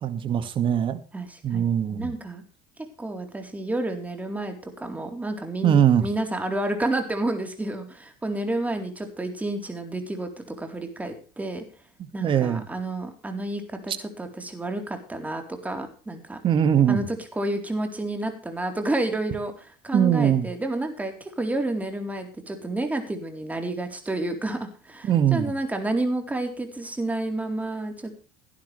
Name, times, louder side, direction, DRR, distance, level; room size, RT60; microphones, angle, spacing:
voice 1, 0.0-1.0 1.4-2.1 5.6-6.1 12.0-12.7 13.9-14.0 16.4-17.0 19.9-20.5 25.0-25.5, right 9 dB, 45° right, 10 dB, 2.1 m, -21 dB
voice 2, 1.1-2.4 3.0-11.6 12.1-16.4 16.9-19.5 19.8-28.2, right 2 dB, 10° right, 5 dB, 3.9 m, -30 dB
17.0 x 11.5 x 3.4 m, 0.38 s
supercardioid pair, 100°, 12 cm